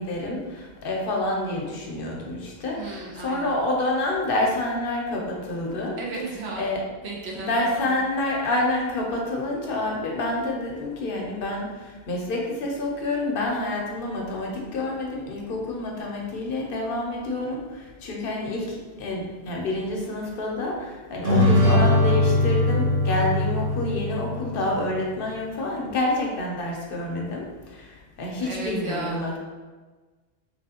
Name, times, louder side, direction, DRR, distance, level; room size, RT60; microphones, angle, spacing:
voice 1, 0.0-6.0 6.6-6.8 7.3-29.4, left 2 dB, 65° left, -1 dB, 0.8 m, -28 dB
voice 2, 2.7-3.5 6.0-6.7 7.0-8.0 28.4-29.4, right 3 dB, 85° right, -2 dB, 1.0 m, -35 dB
sound 1, 21.2-24.9, left 2 dB, 40° right, 0.8 m, -21 dB
3.0 x 3.0 x 2.8 m, 1.3 s
omnidirectional pair, 1.1 m